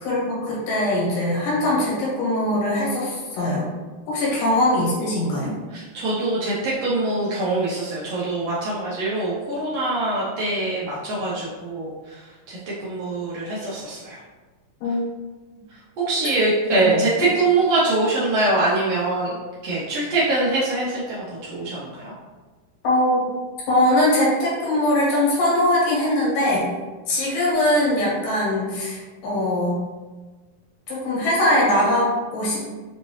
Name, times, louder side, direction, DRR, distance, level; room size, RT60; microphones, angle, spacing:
voice 1, 0.0-3.7 4.1-5.5 14.8-15.0 16.8-17.0 22.8-23.3 23.7-26.7 27.1-29.8 30.9-32.6, left 1 dB, 80° left, -5 dB, 2.9 m, -21 dB
voice 2, 5.7-12.2 12.5-14.2 16.1-19.4 19.6-22.1, right 2 dB, 85° right, -7 dB, 1.4 m, -23 dB
5.7 x 2.7 x 3.0 m, 1.3 s
omnidirectional pair, 3.9 m